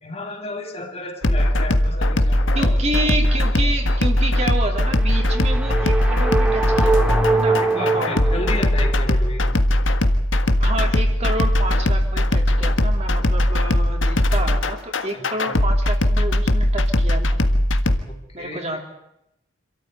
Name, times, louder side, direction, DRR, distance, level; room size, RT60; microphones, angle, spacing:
voice 1, 0.0-2.8 7.7-9.6 15.1-15.5 18.1-18.6, left 2 dB, 30° left, 3 dB, 2.5 m, -32 dB
sound 1, 1.2-18.0, left 1 dB, 75° left, 1.7 m, -19 dB
voice 2, 2.5-8.2 10.6-17.4 18.3-18.8, right 1 dB, 35° right, 3 dB, 3.2 m, -29 dB
sound 2, 4.8-9.1, right 3 dB, 5° right, 2.4 m, -23 dB
27.0 x 13.5 x 9.3 m, 0.84 s
head